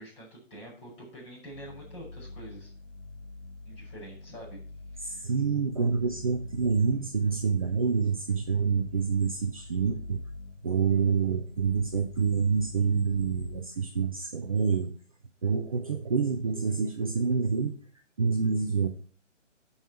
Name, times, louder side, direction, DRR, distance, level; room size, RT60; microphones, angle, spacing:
voice 1, 0.0-2.7 3.7-4.6 5.0-5.3, right 1 dB, 15° left, -4 dB, 5.4 m, -46 dB
sound 1, 1.5-13.6, left 2 dB, 85° left, 1.4 m, -46 dB
voice 2, 5.0-10.2 10.6-14.9 15.4-17.7 18.2-18.9, right 5 dB, 30° right, 4 dB, 0.7 m, -27 dB
12.5 x 5.6 x 4.4 m, 0.42 s
figure-of-eight pair, 140°, 38 cm